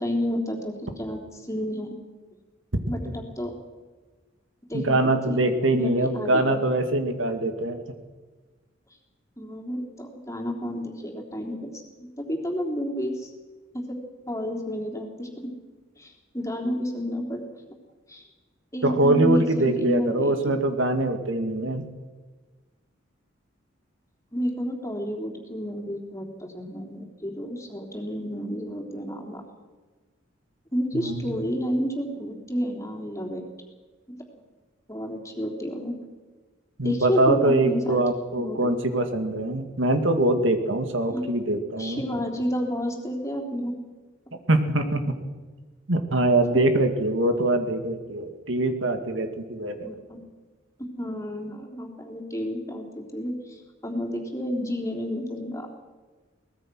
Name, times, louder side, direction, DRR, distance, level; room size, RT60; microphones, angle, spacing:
voice 1, 0.0-1.9 2.9-3.5 4.7-5.4 5.7-6.6 9.4-11.7 12.3-13.3 13.7-13.8 14.3-15.3 16.0-17.4 18.1-18.2 18.7-20.6 24.3-29.4 30.7-33.4 34.1-34.2 34.9-35.9 36.8-38.0 38.3-38.8 41.1-41.2 41.8-43.7 49.8-50.2 51.0-55.7, equal, 15° left, 1 dB, 3.5 m, -30 dB
voice 2, 4.7-7.8 18.8-21.8 30.9-31.4 36.8-42.0 44.5-45.0 45.9-49.9, right 2 dB, 75° right, 7 dB, 2.2 m, -23 dB
23.5 x 19.5 x 6.3 m, 1.3 s
head